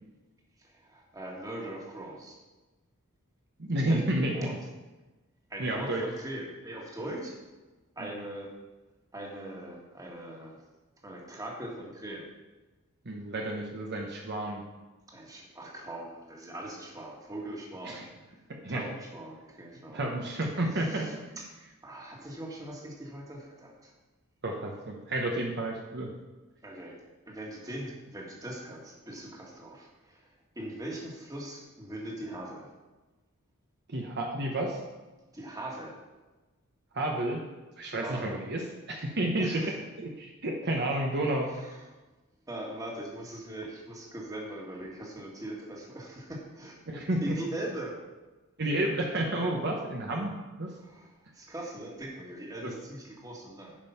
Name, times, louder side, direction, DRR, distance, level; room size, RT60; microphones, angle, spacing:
voice 1, 0.6-2.4 3.9-4.5 5.5-7.3 7.9-8.5 9.1-10.6 11.0-12.3 15.1-18.1 18.7-20.0 20.8-21.4 21.8-23.9 26.6-27.0 27.3-30.3 30.5-32.7 35.3-36.0 38.0-38.3 39.4-39.8 41.5-41.8 42.5-46.8 47.2-47.9 50.8-53.8, right 1 dB, 15° right, -2 dB, 1.7 m, -41 dB
voice 2, 3.6-4.6 5.6-6.0 8.0-8.1 13.0-14.6 17.8-18.1 18.5-18.9 19.9-21.1 24.4-26.1 33.9-34.8 36.9-37.4 37.8-41.5 46.9-47.4 48.6-50.3 50.6-50.7 52.6-52.7, right 1 dB, 50° right, 0 dB, 1.0 m, -31 dB
9.9 x 5.4 x 5.7 m, 1.2 s
head